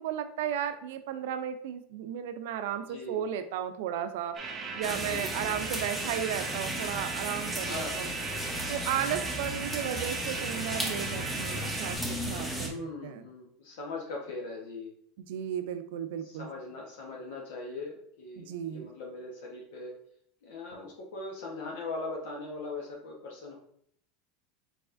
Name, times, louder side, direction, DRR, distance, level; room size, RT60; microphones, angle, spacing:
voice 1, 0.0-4.4 4.7-8.2 8.7-12.0 12.3-13.3 15.2-16.5 18.4-18.9, right 9 dB, 75° right, 9 dB, 0.4 m, -34 dB
voice 2, 2.9-3.2 5.0-5.5 7.6-8.1 12.6-14.9 16.2-19.9 20.4-23.6, left 3 dB, 80° left, -2 dB, 1.0 m, -40 dB
sound 1, 4.3-12.0, right 4 dB, 30° right, 0.8 m, -38 dB
sound 2, 4.8-12.7, equal, ahead, 0.8 m, -35 dB
4.7 x 4.1 x 2.5 m, 0.67 s
supercardioid pair, 130°, 0 cm